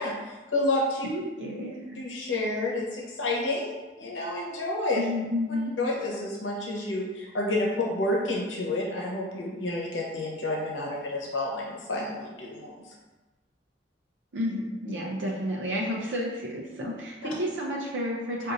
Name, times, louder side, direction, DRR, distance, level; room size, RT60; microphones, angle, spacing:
voice 1, 0.0-1.1 2.0-5.0 5.8-12.9, left 2 dB, 85° left, -2 dB, 0.9 m, -29 dB
voice 2, 1.0-2.0 4.9-5.8 14.3-18.5, left 1 dB, 70° right, -3 dB, 0.6 m, -31 dB
5.0 x 2.6 x 2.6 m, 1.1 s
head